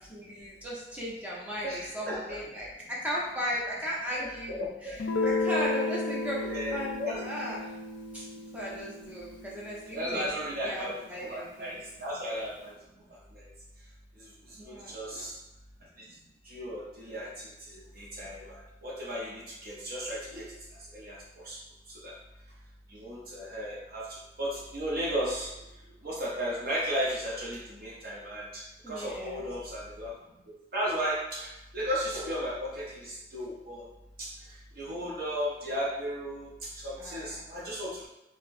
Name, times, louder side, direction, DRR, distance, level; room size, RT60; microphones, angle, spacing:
voice 1, 0.1-7.7 8.1-8.2 8.5-10.3 10.6-11.8 14.5-15.0 28.8-29.4 37.0-37.4, equal, 10° right, -6 dB, 0.7 m, -36 dB
voice 2, 1.6-2.4 4.2-4.9 6.4-7.2 9.9-12.7 14.4-15.3 16.5-20.5 20.9-21.2 21.4-21.6 21.9-22.1 22.9-25.5 26.0-30.1 30.7-31.5 31.7-33.8 34.2-34.3 34.8-36.5 36.8-38.1, equal, 50° right, -6 dB, 0.6 m, -35 dB
Guitar, 5.0-10.5, left 3 dB, 80° left, 0.4 m, -33 dB
4.4 x 2.1 x 2.5 m, 0.93 s
head